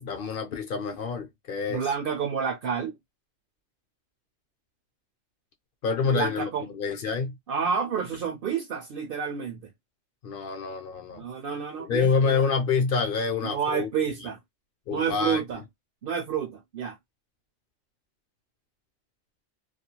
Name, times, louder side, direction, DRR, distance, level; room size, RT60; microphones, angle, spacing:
voice 1, 0.0-1.9 5.8-7.4 10.2-11.3 11.8-14.1 14.9-15.6, left 5 dB, 60° left, 0.7 m, -27 dB
voice 2, 1.7-2.9 6.1-6.7 7.5-9.7 11.2-12.4 13.4-14.4 14.9-15.6 16.0-17.0, right 7 dB, 60° right, 0.7 m, -29 dB
2.4 x 2.1 x 2.8 m
omnidirectional pair, 1.2 m